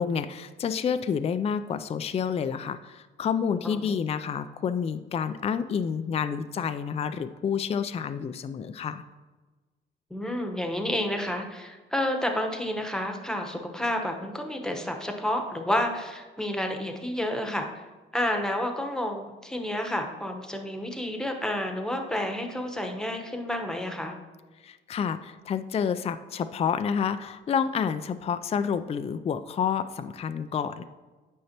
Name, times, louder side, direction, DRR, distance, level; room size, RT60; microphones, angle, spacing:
voice 1, 0.0-9.0 24.6-30.8, left 7 dB, 30° left, 11 dB, 0.4 m, -29 dB
voice 2, 3.6-4.0 10.1-17.7 18.1-24.2, left 1 dB, 5° left, 4 dB, 1.0 m, -30 dB
9.5 x 5.5 x 2.9 m, 1.3 s
cardioid pair, 90°, 20 cm